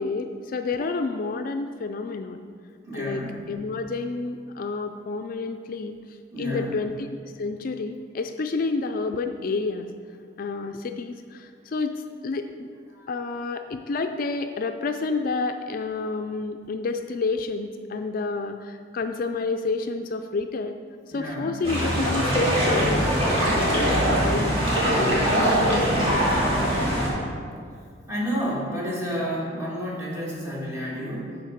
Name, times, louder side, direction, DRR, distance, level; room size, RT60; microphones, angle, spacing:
voice 1, 0.0-2.4 2.9-3.2 3.5-9.9 10.4-12.7 13.1-20.8 21.1-23.1 23.4-24.6 24.9-26.5 26.9-27.0, left 3 dB, 50° left, 7 dB, 0.4 m, -30 dB
voice 2, 2.9-3.5 6.3-6.8 12.9-13.1 21.1-21.6 28.1-31.4, equal, 15° right, -6 dB, 2.0 m, -30 dB
sound 1, 21.6-27.1, equal, 30° right, 2.4 m, -22 dB
12.0 x 4.6 x 5.0 m, 2.1 s
head